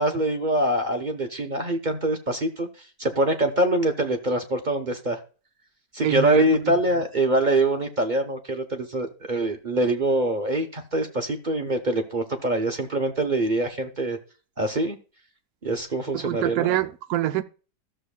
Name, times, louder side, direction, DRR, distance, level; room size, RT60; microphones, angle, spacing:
voice 1, 0.0-2.7 3.0-5.2 5.9-14.2 14.6-15.0 15.6-16.7, right 1 dB, 40° right, 0.7 m, -24 dB
voice 2, 6.0-6.7 16.1-17.4, right 13 dB, 65° right, 1.0 m, -25 dB
13.5 x 6.8 x 2.2 m
omnidirectional pair, 1.7 m